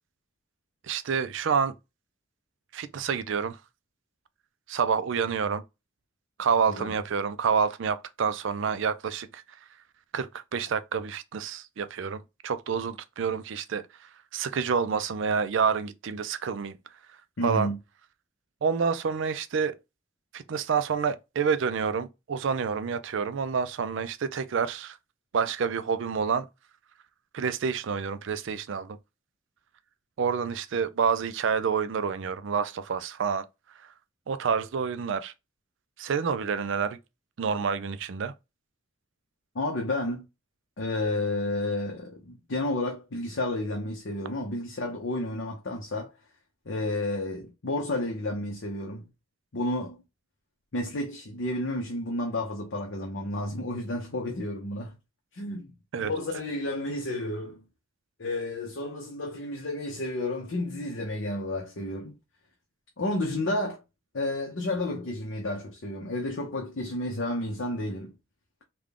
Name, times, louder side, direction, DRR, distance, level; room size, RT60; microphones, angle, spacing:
voice 1, 0.8-1.7 2.7-3.6 4.7-5.6 6.4-9.4 10.1-16.8 17.4-17.7 18.6-19.8 20.3-25.0 25.3-26.5 27.3-29.0 30.2-33.5 34.3-35.3 36.0-37.0 37.4-38.3 55.9-56.1, right 6 dB, 60° right, 0.4 m, -28 dB
voice 2, 17.4-17.8 39.5-40.3 40.8-46.1 46.7-49.1 49.5-50.0 50.7-55.0 55.3-57.6 58.2-62.2 63.0-63.8 64.1-68.1, left 1 dB, 60° left, 0.8 m, -31 dB
3.6 x 2.2 x 3.5 m
head